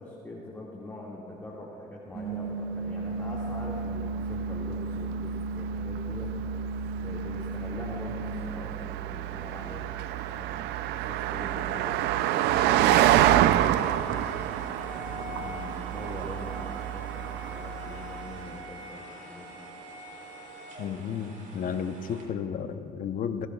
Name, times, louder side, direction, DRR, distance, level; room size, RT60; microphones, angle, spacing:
voice 1, 0.0-6.5 7.0-14.5 15.2-19.7, left 2 dB, 15° left, -5 dB, 2.1 m, -43 dB
sound 1, 2.1-8.3, right 2 dB, 30° right, 1.7 m, -35 dB
Car passing by, 2.8-18.6, right 12 dB, 85° right, 0.5 m, -28 dB
sound 2, 12.4-22.2, equal, 50° right, 3.4 m, -44 dB
voice 2, 20.8-23.5, left 7 dB, 55° left, 9 dB, 0.8 m, -33 dB
26.5 x 15.0 x 2.4 m, 2.7 s
cardioid pair, 110°, 17 cm